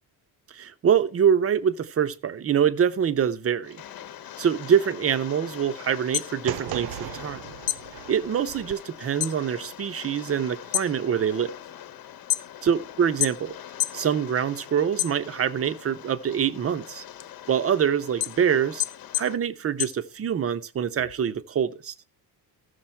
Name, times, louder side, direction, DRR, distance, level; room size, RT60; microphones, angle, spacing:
voice 1, 0.5-3.8 4.4-7.4 8.1-11.5 12.6-13.5 13.9-17.0 17.5-18.8 19.2-21.9, right 8 dB, 35° right, 0.7 m, -25 dB
Rain, 3.6-19.4, left 10 dB, 60° left, 1.0 m, -43 dB
sound 1, 5.9-7.3 7.6-9.4 9.8-10.2 10.6-12.8 13.2-14.1 14.4-15.6 16.1-20.6, left 15 dB, 80° left, 0.9 m, -30 dB
sound 2, 6.4-8.7, right 14 dB, 70° right, 0.5 m, -37 dB
14.5 x 6.7 x 4.4 m
cardioid pair, 150°, 40 cm